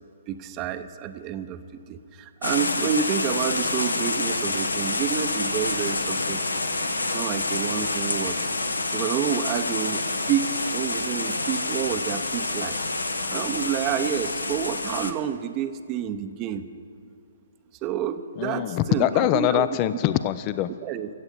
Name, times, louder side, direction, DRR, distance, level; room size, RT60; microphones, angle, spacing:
voice 1, 0.3-6.4 7.1-8.3 8.6-12.8 13.3-16.7 17.8-19.7 20.8-21.1, right 9 dB, 25° right, 10 dB, 0.7 m, -29 dB
sound 1, 2.4-15.1, left 2 dB, 85° left, 1.1 m, -27 dB
voice 2, 18.4-20.7, left 13 dB, 30° left, 14 dB, 0.4 m, -23 dB
15.0 x 8.0 x 9.8 m, 2.3 s
figure-of-eight pair, 130°, 0 cm